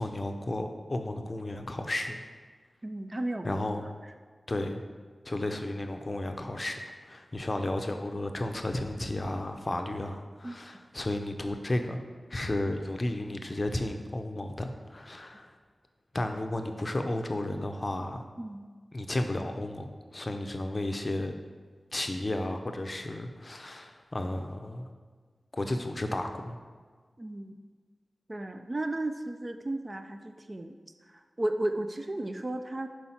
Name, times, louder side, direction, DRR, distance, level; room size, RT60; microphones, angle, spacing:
voice 1, 0.0-2.2 3.4-3.9 4.5-4.8 5.2-6.8 7.1-12.0 12.3-15.6 16.1-18.2 18.9-21.3 21.9-24.9 25.5-26.6, left 1 dB, 40° left, 6 dB, 0.6 m, -33 dB
voice 2, 2.8-3.6 10.4-10.6 18.4-18.7 27.2-27.5 28.3-30.8 31.4-32.9, right 1 dB, 35° right, 7 dB, 0.4 m, -34 dB
5.5 x 4.6 x 4.4 m, 1.5 s
cardioid pair, 50°, 0 cm